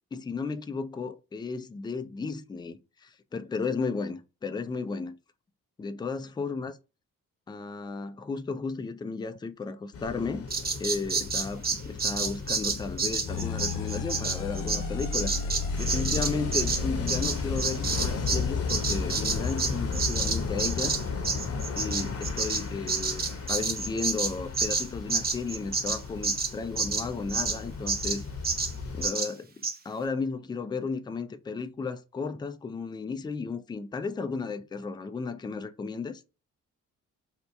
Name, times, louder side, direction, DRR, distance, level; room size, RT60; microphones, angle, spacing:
voice 1, 0.1-5.2 5.8-6.7 7.5-10.5 10.8-15.3 15.8-21.0 21.7-28.2 28.9-29.5 29.8-36.2, left 4 dB, 15° left, 0.3 m, -34 dB
sound 1, 9.9-29.1, left 5 dB, 40° left, 0.8 m, -35 dB
Bird vocalization bird call bird song, 10.5-18.4 18.7-27.6 27.9-28.2 28.4-28.7 29.0-29.3 29.6-29.7, right 4 dB, 25° right, 0.6 m, -29 dB
sound 2, 13.3-22.4, left 4 dB, 85° left, 0.6 m, -36 dB
2.7 x 2.1 x 3.1 m
hypercardioid pair, 45°, 36 cm